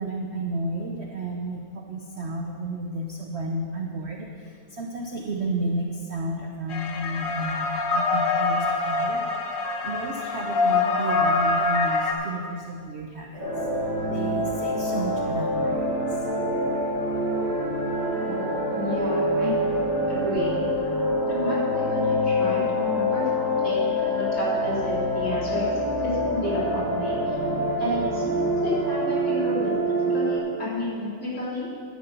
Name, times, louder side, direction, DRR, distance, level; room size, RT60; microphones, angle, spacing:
voice 1, 0.0-9.2 9.8-13.5 14.0-15.9, right 1 dB, 50° right, 0 dB, 0.8 m, -32 dB
sound 1, 6.7-12.1, left 3 dB, 80° left, 1.6 m, -25 dB
sound 2, 13.4-30.4, equal, 75° right, 3.2 m, -25 dB
voice 2, 18.1-18.5 18.7-19.6 20.1-20.9 21.3-23.3 23.6-25.7 26.0-27.3 27.8-29.7 30.0-31.7, left 1 dB, 40° left, -8 dB, 3.5 m, -31 dB
10.5 x 7.7 x 5.4 m, 2.1 s
omnidirectional pair, 2.0 m